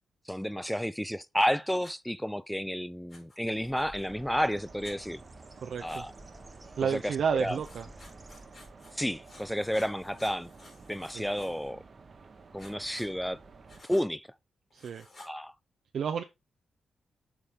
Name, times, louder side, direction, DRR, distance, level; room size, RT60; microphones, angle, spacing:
voice 1, 0.3-5.2 5.8-6.1 6.8-7.6 8.9-10.5 10.9-11.8 12.5-13.4 13.9-14.3 15.2-15.5, equal, ahead, 0.4 m, -31 dB
Writing, 1.8-2.0 3.1-4.0 4.8-5.0 5.9-6.0 7.6-8.9 9.2-11.7 12.6-13.1 13.7-14.1 14.7-15.3, left 2 dB, 45° left, 3.9 m, -54 dB
Bird, 3.4-9.0, right 1 dB, 15° right, 0.8 m, -53 dB
sound 1, 4.0-13.8, right 4 dB, 40° right, 1.0 m, -52 dB
voice 2, 5.6-6.0 6.8-7.9 11.1-11.3 14.7-15.0 15.9-16.2, right 7 dB, 65° right, 0.6 m, -31 dB
7.2 x 5.2 x 3.6 m
cardioid pair, 120°, 0 cm